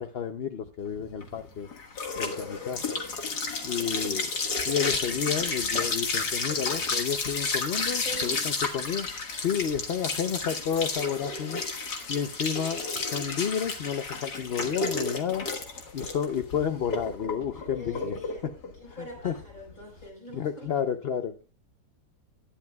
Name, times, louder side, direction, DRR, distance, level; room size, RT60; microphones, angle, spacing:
voice 1, 0.0-1.7 2.2-3.0 3.6-4.3 4.6-9.1 9.4-11.6 12.1-15.5 15.9-18.2 19.2-19.3 20.3-21.4, left 8 dB, 55° left, 7 dB, 0.7 m, -31 dB
sound 1, 1.0-20.0, left 4 dB, 70° left, 2.1 m, -32 dB
voice 2, 7.9-8.5 16.9-17.0 17.5-18.5 18.8-20.7, left 1 dB, 25° left, 0 dB, 5.2 m, -43 dB
18.5 x 11.5 x 2.3 m, 0.35 s
omnidirectional pair, 1.8 m